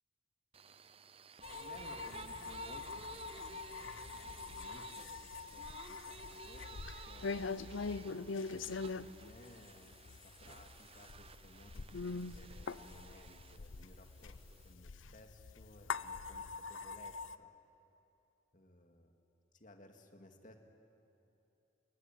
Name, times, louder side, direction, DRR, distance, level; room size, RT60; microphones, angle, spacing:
sound 1, 0.5-14.7, right 5 dB, 30° right, 0.5 m, -55 dB
sound 2, 1.4-17.4, left 4 dB, 90° left, 0.7 m, -44 dB
voice 1, 1.5-8.0 9.0-17.5 18.5-19.1 19.5-20.6, left 1 dB, 40° left, 4 dB, 2.3 m, -59 dB
28.0 x 21.5 x 9.4 m, 2.9 s
head